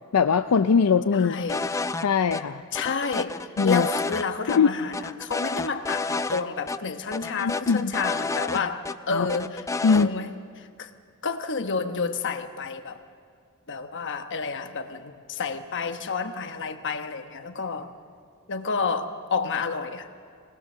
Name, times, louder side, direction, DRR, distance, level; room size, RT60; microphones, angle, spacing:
voice 1, 0.1-1.4 2.0-2.6 3.6-3.9 4.5-4.7 7.4-7.9 9.1-9.3 9.8-10.1, left 5 dB, 80° left, 8 dB, 0.5 m, -21 dB
voice 2, 1.1-1.6 2.7-3.4 3.6-10.3 10.6-10.9 11.2-13.0 13.7-17.9 18.5-20.1, left 5 dB, 55° left, 7 dB, 1.1 m, -30 dB
sound 1, 1.5-2.0 2.3-2.4 2.7-4.2 4.5-4.6 4.9-6.4 6.7-6.8 7.1-8.9 9.3-10.1, left 3 dB, 15° left, 0.4 m, -30 dB
24.5 x 19.0 x 6.6 m, 2.2 s
head